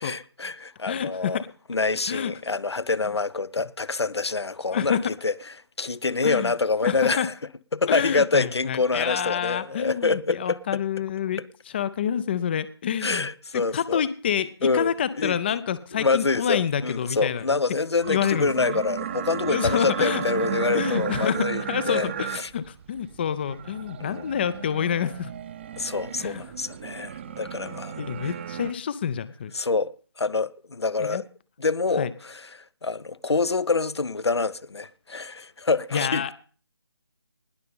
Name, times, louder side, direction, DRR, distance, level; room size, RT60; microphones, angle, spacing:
voice 1, 0.0-1.4 1.7-5.3 5.8-7.3 7.7-10.6 13.0-14.0 14.6-15.4 16.0-22.5 24.0-24.3 25.8-28.0 29.5-31.2 31.6-36.2, left 4 dB, 80° left, 0.8 m, -26 dB
voice 2, 0.9-1.5 2.1-2.3 4.7-5.0 6.2-6.5 6.8-7.3 7.9-11.4 11.7-13.3 13.5-17.4 18.1-18.8 19.5-20.2 20.7-22.3 22.5-25.3 26.2-26.4 27.6-29.5 31.0-31.2 32.0-32.1 35.9-36.3, left 8 dB, 25° left, 0.5 m, -28 dB
sound 1, 18.0-28.7, right 8 dB, 25° right, 0.7 m, -34 dB
19.5 x 6.6 x 5.4 m
figure-of-eight pair, 155°, 14 cm